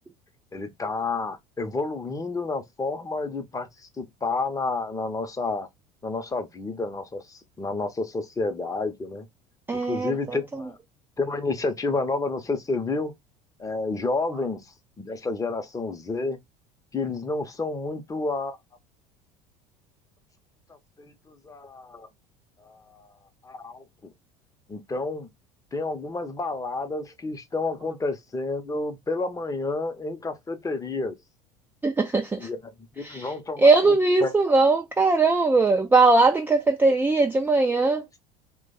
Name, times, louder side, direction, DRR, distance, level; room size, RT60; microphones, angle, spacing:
voice 1, 0.5-5.7 6.0-9.3 9.7-10.8 11.2-13.1 13.6-16.4 16.9-18.6 21.0-22.1 22.6-23.1 23.4-23.8 24.7-25.3 25.7-31.2 32.4-32.6 33.0-34.0 34.2-34.3, left 3 dB, 15° left, 0.8 m, -30 dB
voice 2, 9.7-10.4 31.8-32.5 33.0-33.3 33.6-38.0, right 3 dB, 10° right, 0.4 m, -20 dB
3.0 x 2.3 x 4.0 m
figure-of-eight pair, 70°, 20 cm